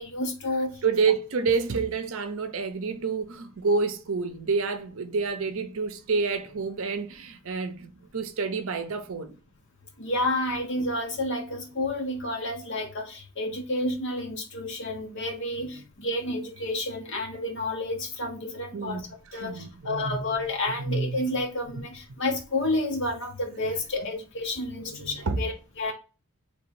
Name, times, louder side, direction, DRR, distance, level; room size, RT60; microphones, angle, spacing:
voice 1, 0.0-0.8 10.0-19.0 19.3-25.9, left 1 dB, 55° left, 1.1 m, -30 dB
voice 2, 0.8-9.4 18.7-19.0 19.3-20.5 20.8-21.1 24.8-25.4, right 4 dB, 60° right, 0.6 m, -28 dB
3.2 x 3.1 x 4.6 m
head